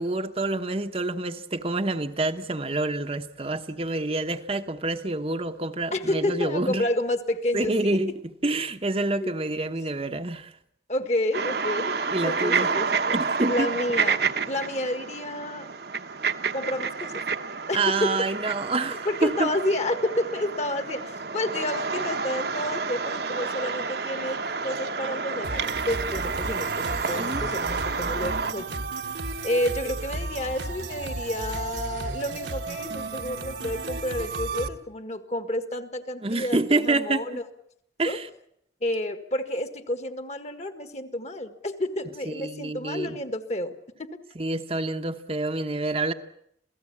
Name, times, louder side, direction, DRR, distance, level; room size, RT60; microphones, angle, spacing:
voice 1, 0.0-6.9 7.5-8.1 8.4-10.5 12.1-12.7 13.1-13.7 17.7-19.5 27.1-27.5 36.2-37.2 38.0-38.3 42.3-43.2 44.4-46.1, right 2 dB, 30° right, 1.0 m, -27 dB
voice 2, 5.9-8.0 9.2-9.4 10.9-12.0 12.2-13.2 13.5-15.7 16.5-17.2 17.7-18.2 19.1-28.8 29.4-37.4 38.1-38.2 38.8-44.1, left 1 dB, 40° left, 1.7 m, -30 dB
sound 1, 11.3-28.5, right 5 dB, 60° right, 1.2 m, -29 dB
sound 2, 25.4-34.7, right 3 dB, 75° right, 1.5 m, -34 dB
27.5 x 17.0 x 8.6 m
head